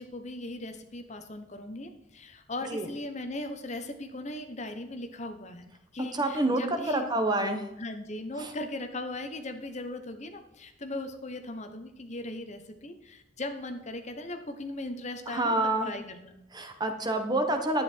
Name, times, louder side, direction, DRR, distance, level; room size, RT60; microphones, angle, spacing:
voice 1, 0.0-5.6 5.9-7.1 7.8-16.4, left 2 dB, 35° left, 7 dB, 1.0 m, -38 dB
voice 2, 6.1-6.6 6.9-7.6 8.4-8.5 15.3-15.9 16.5-17.8, right 2 dB, 20° right, 6 dB, 1.2 m, -27 dB
11.0 x 9.2 x 4.5 m, 0.87 s
head